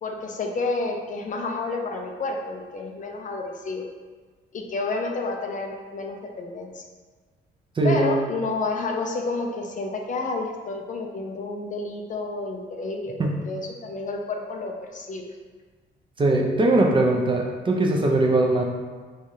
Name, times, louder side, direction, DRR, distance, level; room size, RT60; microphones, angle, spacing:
voice 1, 0.0-3.9 4.5-6.8 7.8-13.2 13.5-15.3, left 3 dB, 40° left, 2 dB, 0.4 m, -30 dB
voice 2, 7.8-8.1 13.2-13.4 16.2-18.6, right 2 dB, 25° right, -1 dB, 0.4 m, -20 dB
3.2 x 2.3 x 2.7 m, 1.4 s
cardioid pair, 90°, 20 cm